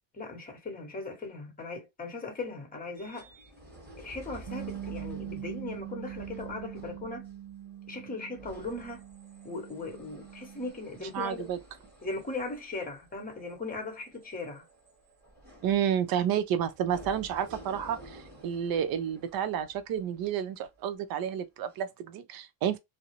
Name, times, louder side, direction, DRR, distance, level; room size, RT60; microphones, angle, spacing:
voice 1, 0.1-3.3 4.0-7.3 7.9-9.0 9.4-11.5 12.0-14.6, left 3 dB, 15° left, 1.0 m, -38 dB
sound 1, 2.9-21.1 21.7-21.8, right 1 dB, 20° right, 1.1 m, -52 dB
Bass guitar, 4.5-10.7, right 11 dB, 85° right, 0.7 m, -42 dB
voice 2, 11.1-11.6 15.6-22.8, right 9 dB, 50° right, 0.5 m, -30 dB
2.3 x 2.0 x 2.9 m
supercardioid pair, 110°, 49 cm